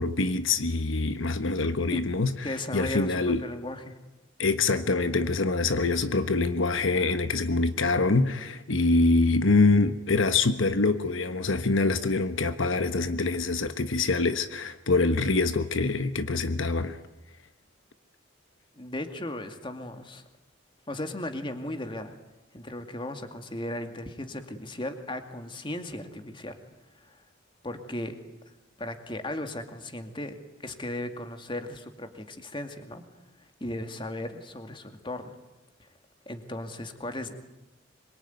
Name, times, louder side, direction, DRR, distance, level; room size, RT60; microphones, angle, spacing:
voice 1, 0.0-3.4 4.4-17.0, left 3 dB, 80° left, 10 dB, 1.2 m, -25 dB
voice 2, 2.4-4.0 18.8-20.2 20.9-22.1 22.5-26.6 26.9-27.2 27.6-28.2 28.5-30.3 30.6-33.0 33.6-35.3 36.3-37.3, left 1 dB, 25° left, 7 dB, 2.3 m, -36 dB
25.5 x 23.0 x 9.5 m, 0.97 s
head